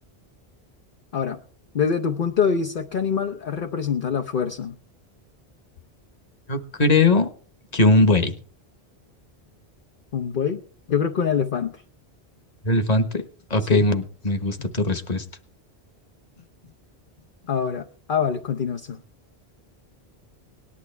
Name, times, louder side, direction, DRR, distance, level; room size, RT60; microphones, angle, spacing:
voice 1, 1.7-4.8 10.1-10.6 10.9-11.8 13.6-13.8 14.6-14.7 17.5-19.0, left 7 dB, 55° left, 5 dB, 1.0 m, -25 dB
voice 2, 6.5-7.3 7.7-8.4 12.6-13.2 13.5-15.2, left 2 dB, 40° left, 8 dB, 1.4 m, -20 dB
18.5 x 11.5 x 3.3 m, 0.42 s
omnidirectional pair, 1.1 m